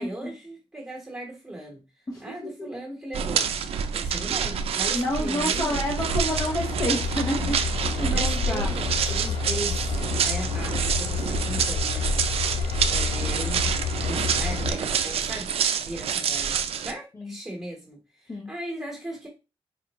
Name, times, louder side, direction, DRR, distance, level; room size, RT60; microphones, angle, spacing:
voice 1, 0.0-1.8 2.2-5.9 7.9-10.0 10.2-13.7 14.0-15.5 15.8-16.6 16.8-19.3, right 1 dB, 5° right, 1.2 m, -38 dB
voice 2, 2.1-2.7 4.9-8.8 17.2-17.3 18.3-18.5, left 1 dB, 35° left, 0.9 m, -29 dB
sound 1, 3.1-16.9, right 7 dB, 85° right, 0.4 m, -27 dB
Train / Engine, 6.0-14.7, left 5 dB, 65° left, 0.4 m, -29 dB
4.7 x 2.4 x 3.0 m
wide cardioid pair, 115°, 10 cm